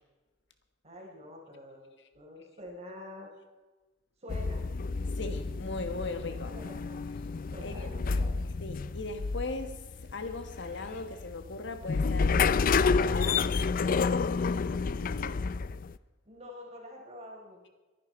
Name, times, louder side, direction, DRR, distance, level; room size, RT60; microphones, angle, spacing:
voice 1, 0.8-3.3 4.2-4.6 6.5-7.0 7.5-8.4 16.2-17.6, left 1 dB, 35° right, 4.2 m, -46 dB
sound 1, 4.3-16.0, left 4 dB, 50° left, 0.4 m, -30 dB
voice 2, 5.1-6.5 7.6-7.9 8.6-15.4, left 3 dB, 70° left, 1.5 m, -39 dB
23.0 x 11.0 x 4.5 m
head